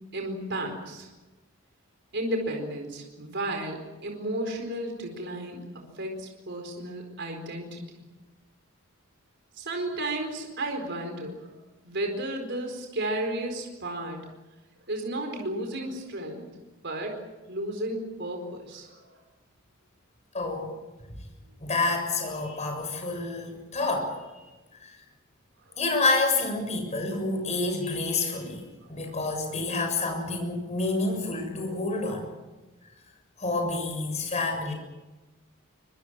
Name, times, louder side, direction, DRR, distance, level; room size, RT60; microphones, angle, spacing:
voice 1, 0.1-1.1 2.1-7.8 9.6-11.5 11.8-14.3 14.9-16.5 16.8-19.1 25.7-25.8 28.8-28.9, right 1 dB, 55° right, 3 dB, 4.5 m, -33 dB
voice 2, 20.3-20.7 21.1-21.2 21.6-24.2 24.8-25.0 25.8-28.6 28.9-32.2 33.4-34.7, left 3 dB, 35° left, 3 dB, 7.2 m, -28 dB
24.5 x 23.5 x 7.5 m, 1.1 s
head